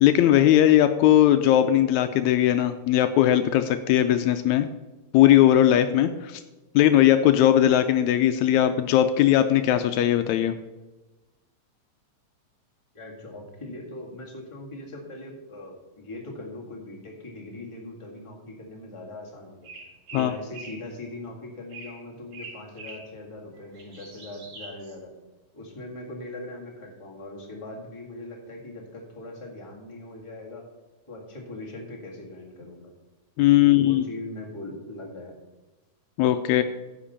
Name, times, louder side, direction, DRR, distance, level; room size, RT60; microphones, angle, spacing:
voice 1, 0.0-4.7 5.1-6.4 6.8-10.6 20.1-20.3 33.4-34.0 36.2-36.6, left 12 dB, 80° left, 9 dB, 1.8 m, -19 dB
voice 2, 12.9-19.7 20.1-25.1 25.5-30.6 31.1-32.9 33.6-35.3, left 2 dB, 15° left, -2 dB, 1.5 m, -40 dB
sound 1, 19.6-20.8 21.7-22.0 22.3-23.1 23.5-24.9, right 3 dB, 55° right, 2.8 m, -43 dB
10.0 x 5.2 x 7.0 m, 1.1 s
omnidirectional pair, 3.4 m